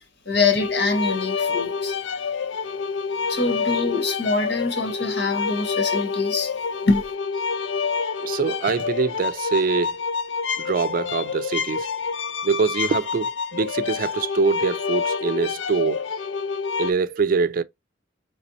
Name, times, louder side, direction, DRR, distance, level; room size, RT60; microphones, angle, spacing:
voice 1, 0.3-1.9 3.3-6.5 6.8-7.0, left 3 dB, 65° left, 1.2 m, -24 dB
sound 1, 0.6-16.9, left 5 dB, 85° left, 0.5 m, -27 dB
voice 2, 8.2-10.0 10.6-11.9 12.4-16.0 16.8-17.6, right 5 dB, 50° right, 0.4 m, -24 dB
4.2 x 3.3 x 2.6 m
head